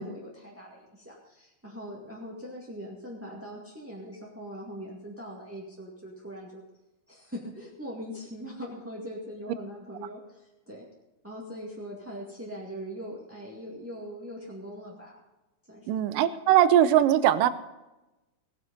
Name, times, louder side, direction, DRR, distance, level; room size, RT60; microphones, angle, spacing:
voice 1, 0.0-6.6 7.1-10.9 11.2-15.2 15.7-16.0, equal, 5° right, -3 dB, 1.1 m, -41 dB
voice 2, 15.9-17.5, right 11 dB, 90° right, 14 dB, 2.4 m, -20 dB
17.5 x 9.3 x 5.3 m, 1.0 s
omnidirectional pair, 3.8 m